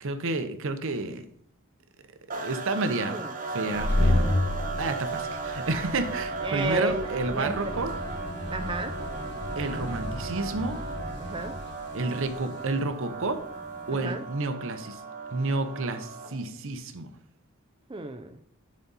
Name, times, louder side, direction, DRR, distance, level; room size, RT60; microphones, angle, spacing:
voice 1, 0.0-1.2 2.3-3.2 3.5-7.9 9.6-10.8 11.9-13.4 13.9-15.0 15.3-17.1, right 3 dB, 65° right, 9 dB, 0.8 m, -30 dB
sound 1, 2.3-16.5, right 4 dB, 40° right, 1.1 m, -37 dB
sound 2, 3.6-14.0, left 1 dB, 55° left, 1.1 m, -32 dB
voice 2, 6.4-7.1 7.3-7.5 8.5-8.9 11.2-11.5 14.0-14.2 17.9-18.3, right 2 dB, 25° right, 6 dB, 0.5 m, -31 dB
11.0 x 4.2 x 4.1 m, 0.62 s
head